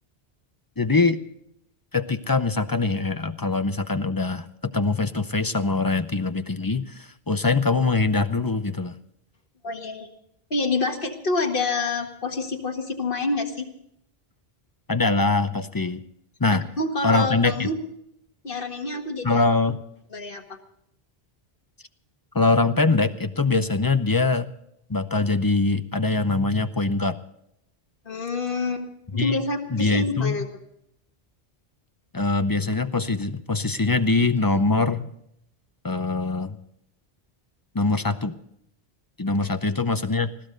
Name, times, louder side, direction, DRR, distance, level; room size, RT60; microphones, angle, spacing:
voice 1, 0.8-1.2 1.9-9.0 14.9-16.0 16.4-16.6 17.0-17.7 19.2-19.8 22.3-24.5 24.9-27.2 29.1-29.4 29.7-30.4 32.1-35.0 35.8-36.6 37.7-38.3 39.2-40.3, left 3 dB, 25° left, 10 dB, 0.6 m, -23 dB
voice 2, 9.6-10.1 10.5-13.7 16.5-17.8 18.4-19.4 20.1-20.4 28.1-28.8 29.1-30.5, left 3 dB, 60° left, 3 dB, 1.9 m, -27 dB
20.5 x 15.0 x 3.9 m, 0.74 s
omnidirectional pair, 1.1 m